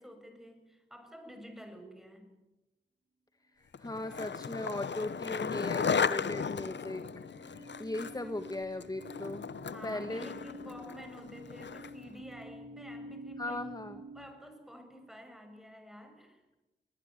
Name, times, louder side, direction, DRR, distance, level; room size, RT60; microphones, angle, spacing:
voice 1, 0.0-2.3 9.7-13.6 14.1-16.4, equal, ahead, 5 dB, 7.2 m, -50 dB
voice 2, 3.5-7.0 7.4-9.5 9.8-10.3 13.4-14.0, left 1 dB, 20° left, 9 dB, 1.4 m, -38 dB
Skateboard, 3.7-12.1, left 6 dB, 70° left, 0.9 m, -36 dB
sound 1, 5.6-14.2, left 1 dB, 80° right, 5.6 m, -49 dB
23.5 x 20.5 x 9.4 m, 1.0 s
wide cardioid pair, 60°, 19 cm